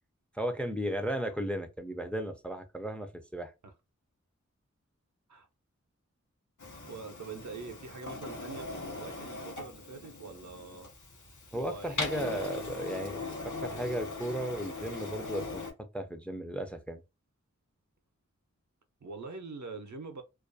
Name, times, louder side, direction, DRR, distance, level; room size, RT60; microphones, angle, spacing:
voice 1, 0.3-3.5 11.5-15.6 15.9-17.0, equal, 5° left, 0.3 m, -35 dB
Printer, 6.6-15.7, left 3 dB, 90° left, 0.7 m, -40 dB
voice 2, 6.8-10.9 11.5-13.1 19.0-20.2, right 4 dB, 75° right, 0.5 m, -44 dB
2.3 x 2.2 x 2.5 m
wide cardioid pair, 45°, 29 cm